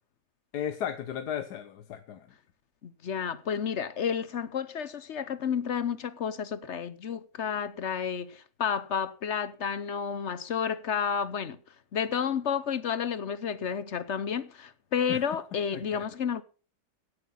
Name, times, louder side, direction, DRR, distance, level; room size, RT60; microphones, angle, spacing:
voice 1, 0.5-2.3 15.1-15.2 15.7-16.0, left 9 dB, 75° left, 1.4 m, -35 dB
voice 2, 2.8-11.6 11.9-16.4, left 7 dB, 55° left, 0.9 m, -31 dB
17.0 x 8.2 x 5.6 m
omnidirectional pair, 1.8 m